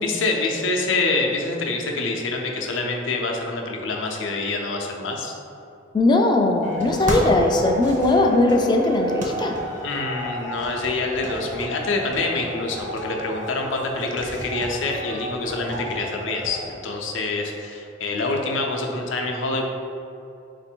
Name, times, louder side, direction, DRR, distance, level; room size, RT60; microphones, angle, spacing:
voice 1, 0.0-5.3 9.8-19.6, left 3 dB, 85° left, 1 dB, 0.6 m, -26 dB
voice 2, 5.9-9.6, left 2 dB, 25° left, 3 dB, 0.3 m, -19 dB
sound 1, 6.6-16.7, equal, 40° right, 0.7 m, -32 dB
4.3 x 2.6 x 4.3 m, 2.7 s
head